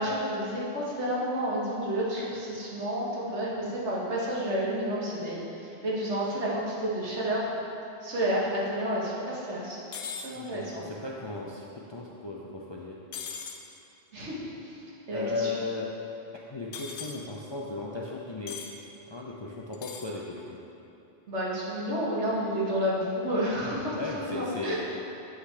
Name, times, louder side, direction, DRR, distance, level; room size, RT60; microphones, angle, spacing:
voice 1, 0.0-7.5 8.0-9.8 10.2-10.8 14.1-14.4 14.6-14.8 15.1-15.5 21.3-24.8, equal, 80° right, -6 dB, 1.6 m, -30 dB
sound 1, 9.9-10.3 13.1-13.6 16.7-17.2 18.5-18.7 19.7-20.1, left 6 dB, 80° left, 0.9 m, -38 dB
voice 2, 10.3-13.0 15.1-15.9 16.5-18.6 19.1-20.6 23.9-24.7, left 3 dB, 45° left, -4 dB, 0.3 m, -36 dB
7.8 x 5.8 x 3.3 m, 2.9 s
omnidirectional pair, 1.1 m